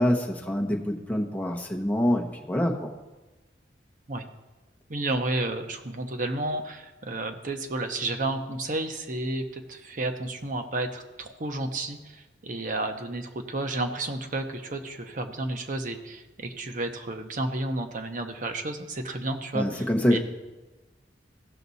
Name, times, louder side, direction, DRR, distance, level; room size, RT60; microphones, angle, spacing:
voice 1, 0.0-2.9 19.5-20.2, equal, 10° left, 1 dB, 0.9 m, -25 dB
voice 2, 4.9-20.2, right 2 dB, 50° right, 5 dB, 0.9 m, -31 dB
15.5 x 5.9 x 4.1 m, 1.1 s
head